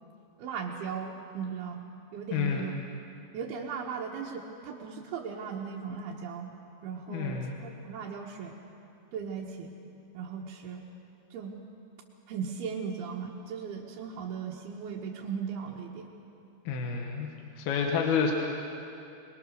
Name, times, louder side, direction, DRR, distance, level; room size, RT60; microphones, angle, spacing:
voice 1, 0.4-1.9 2.1-2.7 3.3-6.5 6.8-8.6 9.1-9.7 10.1-10.8 11.3-11.6 12.3-16.1, right 6 dB, 70° right, -4 dB, 2.7 m, -37 dB
voice 2, 2.3-2.7 7.1-7.5 16.7-17.3 17.6-18.3, left 6 dB, 65° left, 1 dB, 2.8 m, -29 dB
24.0 x 21.5 x 6.5 m, 2.6 s
omnidirectional pair, 5.6 m